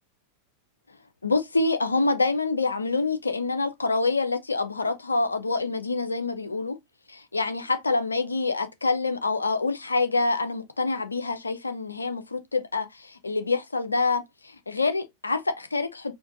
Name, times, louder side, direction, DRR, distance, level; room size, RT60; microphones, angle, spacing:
voice 1, 1.2-6.8 7.1-16.1, left 3 dB, 80° left, 0.5 m, -26 dB
4.4 x 2.5 x 2.5 m
figure-of-eight pair, 90°, 0 cm